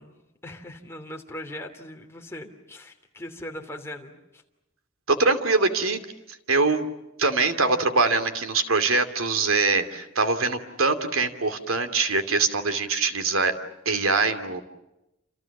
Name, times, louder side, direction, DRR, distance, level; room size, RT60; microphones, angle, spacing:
voice 1, 0.0-4.4, left 1 dB, 10° left, 2 dB, 3.0 m, -40 dB
voice 2, 5.1-6.0 6.5-6.9 7.2-13.5 13.8-14.6, right 3 dB, 85° right, 9 dB, 2.8 m, -23 dB
29.0 x 27.5 x 7.3 m, 0.92 s
head